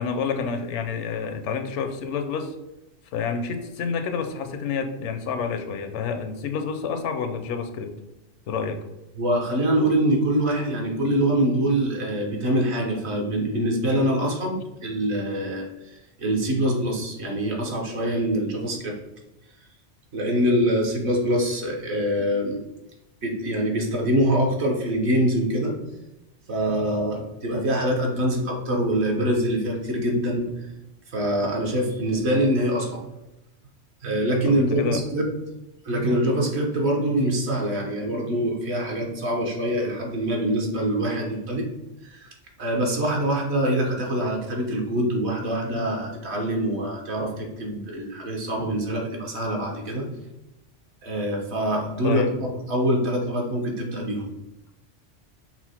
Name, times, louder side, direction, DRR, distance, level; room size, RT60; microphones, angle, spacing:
voice 1, 0.0-2.6 3.1-8.0 8.5-8.8 34.4-35.0 52.0-52.4, left 6 dB, 75° left, 7 dB, 0.9 m, -29 dB
voice 2, 9.2-19.0 20.1-22.6 23.2-25.8 26.5-30.5 31.1-33.1 34.0-35.2 35.8-41.7 42.0-42.3 42.6-50.1 51.0-54.3, right 1 dB, 65° right, 0 dB, 1.2 m, -24 dB
5.7 x 2.1 x 4.2 m, 0.94 s
omnidirectional pair, 1.2 m